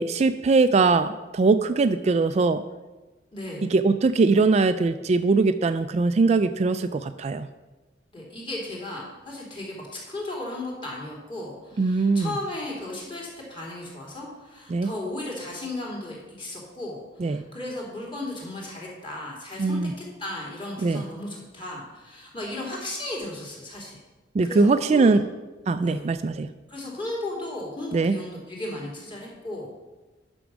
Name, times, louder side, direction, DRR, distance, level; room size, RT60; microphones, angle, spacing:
voice 1, 0.0-2.6 3.6-7.5 11.8-12.3 14.7-14.9 17.2-17.4 19.6-19.9 20.8-21.0 24.3-25.2 25.7-26.5 27.9-28.2, right 3 dB, 35° right, 11 dB, 0.3 m, -21 dB
voice 2, 3.3-3.6 8.1-24.0 24.4-25.2 25.8-26.1 26.7-29.7, left 1 dB, 30° left, -3 dB, 3.0 m, -35 dB
10.5 x 6.2 x 6.1 m, 1.2 s
head